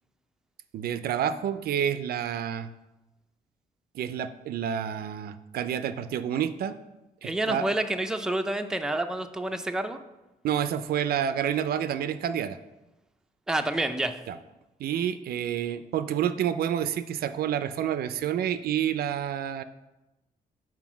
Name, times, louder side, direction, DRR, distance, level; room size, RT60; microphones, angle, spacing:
voice 1, 0.7-2.7 3.9-6.8 7.2-7.7 10.4-12.6 14.3-14.4 14.8-19.6, right 9 dB, 80° right, 12 dB, 0.4 m, -29 dB
voice 2, 7.2-10.0 13.5-14.2, right 1 dB, 5° right, 6 dB, 0.4 m, -28 dB
5.8 x 4.5 x 6.0 m, 1.0 s
cardioid pair, 125°, 15 cm